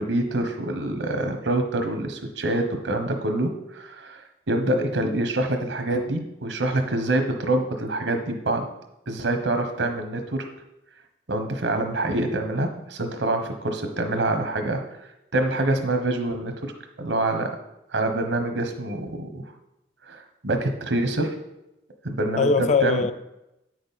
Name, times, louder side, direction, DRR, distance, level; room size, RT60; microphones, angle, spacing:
voice 1, 0.0-8.7 9.1-10.4 11.3-14.8 15.3-16.7 17.0-17.5 17.9-19.4 20.1-21.3 22.0-22.5 22.8-23.0, right 2 dB, 85° right, 1.1 m, -26 dB
voice 2, 4.6-5.2 22.4-23.1, left 4 dB, 40° left, 0.4 m, -23 dB
8.6 x 6.2 x 4.1 m
head